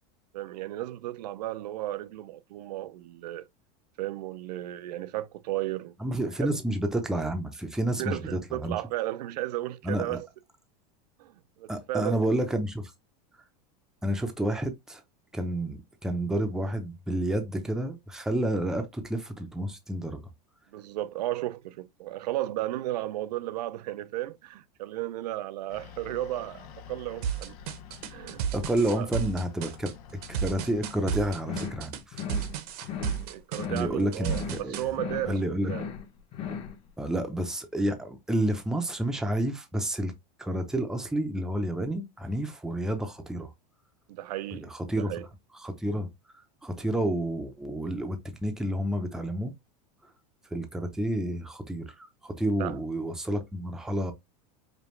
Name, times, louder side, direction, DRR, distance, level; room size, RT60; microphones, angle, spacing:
voice 1, 0.3-3.5 4.0-5.9 6.4-6.5 8.0-10.3 11.2-11.3 11.6-12.4 20.7-27.6 28.1-28.4 29.0-29.1 33.3-35.4 35.7-35.9 44.1-45.3 52.6-52.8, right 15 dB, 90° right, 0.5 m, -34 dB
voice 2, 6.0-8.7 9.8-10.2 11.7-12.9 14.0-15.0 15.3-20.2 28.5-29.9 30.3-32.2 33.7-34.9 35.3-35.7 37.0-40.1 40.4-43.5 44.5-45.1 45.6-46.1 46.6-49.5 50.5-54.1, right 1 dB, 5° right, 0.5 m, -30 dB
sound 1, 25.7-31.2, left 8 dB, 65° left, 0.9 m, -47 dB
sound 2, 27.2-34.9, right 8 dB, 70° right, 0.9 m, -33 dB
sound 3, 31.4-31.9 32.1-32.5 32.8-33.3 33.5-34.0 34.2-34.7 34.9-35.3 35.6-36.1 36.3-36.7, left 7 dB, 25° left, 0.8 m, -36 dB
5.1 x 2.3 x 3.1 m
supercardioid pair, 155°, 20 cm